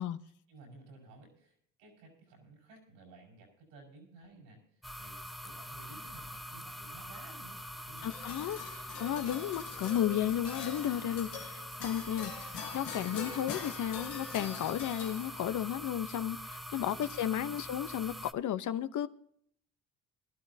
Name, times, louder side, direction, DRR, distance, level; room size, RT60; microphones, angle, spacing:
voice 1, 0.0-8.2 16.7-17.5, right 3 dB, 90° right, 5.2 m, -56 dB
sound 1, 4.8-18.3, equal, ahead, 0.7 m, -44 dB
sound 2, 8.0-15.7, left 6 dB, 85° left, 1.9 m, -44 dB
voice 2, 8.0-12.3 12.7-19.1, left 11 dB, 55° left, 0.9 m, -33 dB
20.0 x 12.5 x 2.7 m
supercardioid pair, 65°, 35 cm